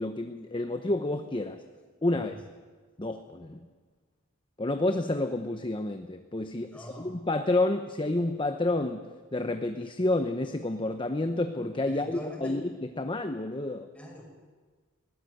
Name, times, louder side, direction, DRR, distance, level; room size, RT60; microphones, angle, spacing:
voice 1, 0.0-1.6 2.0-2.4 3.0-3.6 4.6-9.1 9.3-13.9, left 2 dB, 25° left, 7 dB, 0.9 m, -29 dB
voice 2, 6.7-7.1 11.9-12.6 13.9-14.2, equal, 5° left, -1 dB, 5.5 m, -43 dB
21.0 x 18.5 x 8.0 m, 1.4 s
head